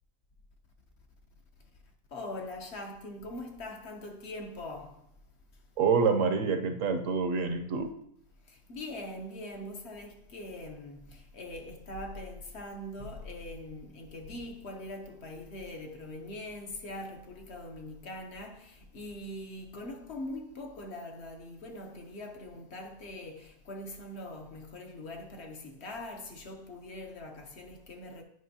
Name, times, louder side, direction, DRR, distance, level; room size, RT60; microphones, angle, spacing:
voice 1, 2.1-5.0 8.5-28.2, left 1 dB, 55° left, 1.0 m, -42 dB
voice 2, 5.8-7.9, right 5 dB, 65° right, 1.0 m, -27 dB
9.3 x 5.2 x 2.8 m
omnidirectional pair, 1.5 m